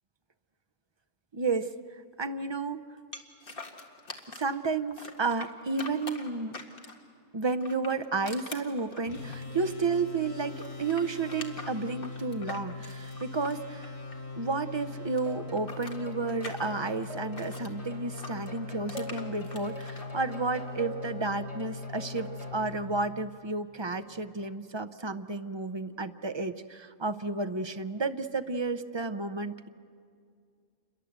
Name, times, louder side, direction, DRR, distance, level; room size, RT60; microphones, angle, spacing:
voice 1, 1.3-1.7 2.2-2.8 4.3-6.6 7.3-13.9 14.4-29.7, right 4 dB, 40° right, 10 dB, 0.4 m, -32 dB
sound 1, 3.1-4.6 5.0-7.1 7.6-10.1 10.3-14.5 14.8-17.7 18.2-20.1, left 3 dB, 45° left, 1.9 m, -44 dB
sound 2, 9.1-23.6, left 3 dB, 80° left, 5.2 m, -41 dB
sound 3, 15.3-22.6, left 2 dB, 25° left, 3.7 m, -45 dB
28.5 x 22.5 x 8.0 m, 2.2 s
omnidirectional pair, 1.4 m